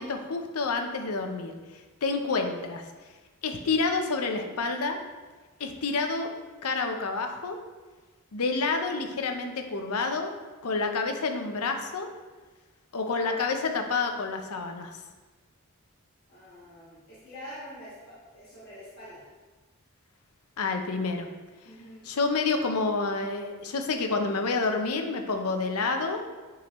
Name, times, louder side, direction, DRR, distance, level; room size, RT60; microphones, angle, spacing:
voice 1, 0.0-2.8 3.4-5.0 5.6-6.3 6.6-7.6 8.3-10.3 10.6-12.1 12.9-15.0 20.6-21.3 22.0-26.2, left 4 dB, 80° left, 5 dB, 0.7 m, -29 dB
voice 2, 16.3-19.3 21.6-22.1, equal, 45° left, -9 dB, 1.7 m, -46 dB
8.5 x 3.8 x 3.1 m, 1.3 s
head